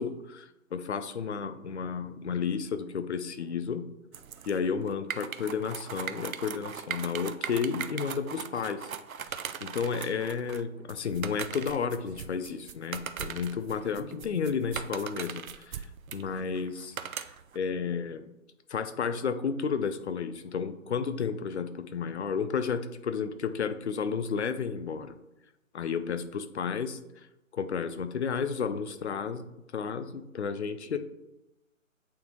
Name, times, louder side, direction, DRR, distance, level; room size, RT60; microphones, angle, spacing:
voice 1, 0.0-3.9 4.5-8.9 9.6-15.9 16.1-17.0 17.5-18.3 18.7-25.2 25.7-27.0 27.5-29.5 29.7-31.0, left 6 dB, 55° left, 10 dB, 0.6 m, -32 dB
sound 1, 4.1-17.6, right 7 dB, 80° right, 0.5 m, -39 dB
8.6 x 3.7 x 3.0 m, 0.92 s
figure-of-eight pair, 145°, 41 cm